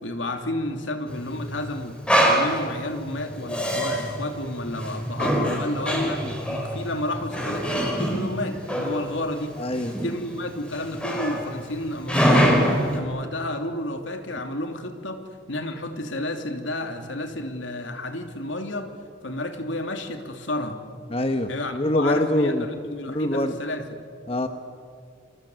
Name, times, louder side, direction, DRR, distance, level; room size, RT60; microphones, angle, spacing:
voice 1, 0.0-2.0 2.2-9.6 10.0-15.2 15.5-18.9 19.2-20.8 21.5-23.9, left 1 dB, 75° left, 5 dB, 2.9 m, -31 dB
Male speech man speaking, 1.1-13.0, equal, 5° left, 4.3 m, -25 dB
voice 2, 6.0-6.3 9.6-10.1 21.1-22.6 23.1-23.5 24.3-24.5, left 1 dB, 30° left, 7 dB, 1.1 m, -25 dB
27.5 x 27.0 x 8.0 m, 2.2 s
head